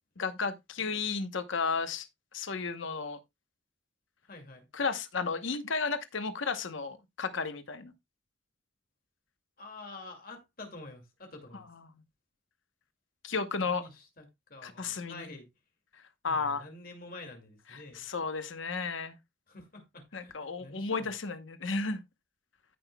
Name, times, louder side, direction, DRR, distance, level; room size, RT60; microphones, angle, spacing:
voice 1, 0.2-2.1 2.3-3.2 4.7-7.9 13.2-13.8 14.6-15.3 16.2-16.6 17.7-19.2 20.1-22.0, left 4 dB, 80° left, 1.0 m, -33 dB
voice 2, 4.3-4.7 9.6-11.7 13.6-15.5 16.3-18.1 19.5-21.1, left 2 dB, 45° left, 2.3 m, -48 dB
15.0 x 5.9 x 2.3 m
head